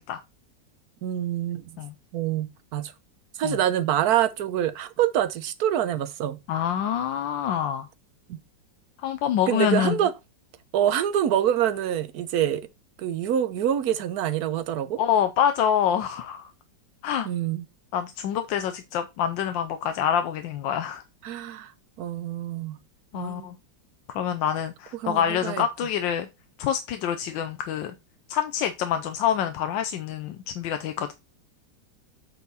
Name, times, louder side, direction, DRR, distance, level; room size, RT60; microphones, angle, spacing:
voice 1, 1.0-1.8 2.1-2.9 3.4-6.4 8.3-8.4 9.5-10.1 10.7-12.7 13.0-15.0 17.2-17.7 21.2-21.7 22.0-22.8 23.1-23.5 24.9-25.6, right 10 dB, 65° right, 1.1 m, -26 dB
voice 2, 6.5-7.9 9.0-10.0 15.0-16.5 17.0-17.3 17.9-21.0 23.1-23.6 24.1-26.3 26.6-27.9 28.3-31.1, left 9 dB, 90° left, 1.4 m, -26 dB
8.3 x 4.2 x 4.0 m
omnidirectional pair, 2.0 m